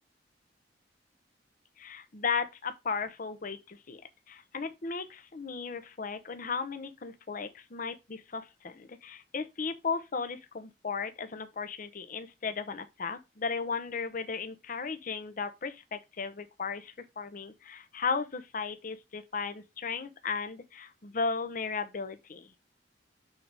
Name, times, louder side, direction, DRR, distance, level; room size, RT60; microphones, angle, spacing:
voice 1, 1.8-4.0 4.3-22.5, left 5 dB, 50° left, 0.7 m, -35 dB
6.6 x 4.0 x 4.6 m
head